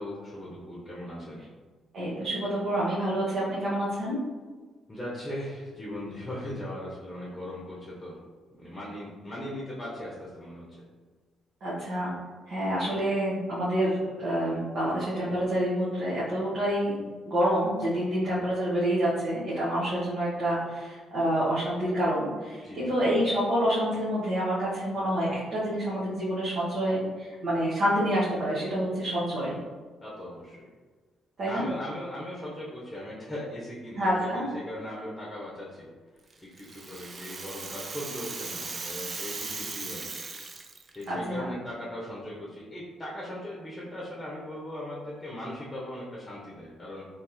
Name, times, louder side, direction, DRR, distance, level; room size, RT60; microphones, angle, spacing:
voice 1, 0.0-1.4 4.9-8.2 8.5-10.7 18.2-18.4 22.6-23.0 30.0-30.7 31.4-35.9 36.4-40.1 40.9-47.0, left 1 dB, 10° left, -6 dB, 1.1 m, -39 dB
voice 2, 1.9-4.2 11.6-12.1 12.5-29.6 31.4-31.6 34.0-34.5 41.1-41.5, equal, 60° right, -10 dB, 1.3 m, -28 dB
Rattle (instrument), 36.3-41.0, right 3 dB, 35° right, 0.4 m, -38 dB
3.6 x 3.2 x 3.1 m, 1.4 s
cardioid pair, 90°, 0 cm